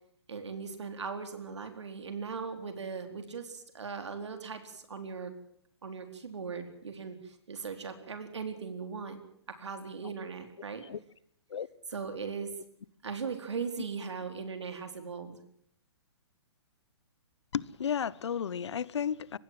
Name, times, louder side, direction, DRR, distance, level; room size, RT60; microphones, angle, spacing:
voice 1, 0.3-5.3 5.8-9.2 9.5-10.8 11.9-12.5 13.0-15.4, right 5 dB, 85° right, 4.3 m, -39 dB
voice 2, 17.5-19.4, left 8 dB, 75° left, 1.1 m, -33 dB
24.0 x 19.5 x 7.7 m
hypercardioid pair, 135°, 14 cm